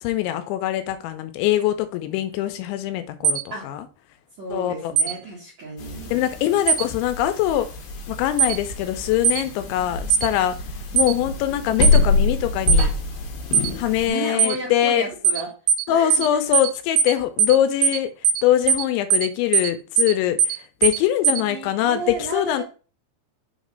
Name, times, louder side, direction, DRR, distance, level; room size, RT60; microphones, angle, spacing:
voice 1, 0.0-3.8 4.5-4.9 6.1-7.7 8.1-10.6 10.9-12.9 13.8-15.1 15.9-18.1 18.4-20.6 20.8-22.6, left 12 dB, 85° left, 10 dB, 2.9 m, -23 dB
sound 1, 3.2-3.4 5.0-5.1 6.7-6.8 8.4-8.6 9.2-9.4 10.1-10.3 11.0-11.1 11.8-12.0 12.7-12.8 13.5-13.7 14.4-14.6 15.2-15.4 15.7-15.8 16.1-16.3 16.5-16.7 17.0-17.1 17.4-17.6 17.8-18.0 18.2-18.4 18.7-18.8 19.1-19.3 19.5-19.7 20.0-20.1 20.4-20.6 20.8-21.0 21.2-21.4, right 7 dB, 80° right, 2.7 m, -18 dB
voice 2, 4.4-6.2 10.9-11.3 14.1-15.5 15.9-16.6 21.3-22.6, right 2 dB, 55° right, -3 dB, 1.9 m, -33 dB
sound 2, 5.8-14.1, left 3 dB, 65° left, 2.6 m, -25 dB
6.7 x 3.1 x 5.2 m, 0.35 s
omnidirectional pair, 5.4 m